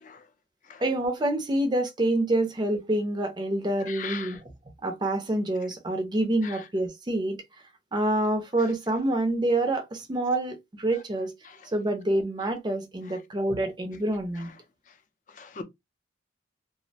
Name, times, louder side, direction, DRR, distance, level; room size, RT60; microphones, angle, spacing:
voice 1, 0.8-4.5 4.8-7.4 7.9-11.3 11.7-14.5, right 1 dB, 25° right, 0.5 m, -27 dB
voice 2, 3.8-4.4 6.4-6.6 11.4-11.6 15.3-15.6, left 6 dB, 40° left, 0.4 m, -38 dB
2.4 x 2.0 x 2.7 m
head